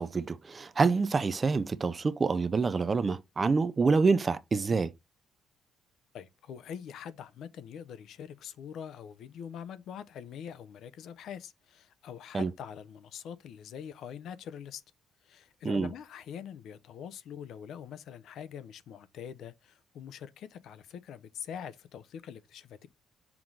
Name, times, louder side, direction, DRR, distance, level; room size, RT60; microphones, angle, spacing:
voice 1, 0.0-4.9 12.3-12.5 15.6-15.9, right 4 dB, 25° right, 0.4 m, -27 dB
voice 2, 6.1-14.8 15.2-22.9, left 8 dB, 65° left, 0.6 m, -44 dB
6.0 x 3.7 x 4.6 m
cardioid pair, 170°, 0 cm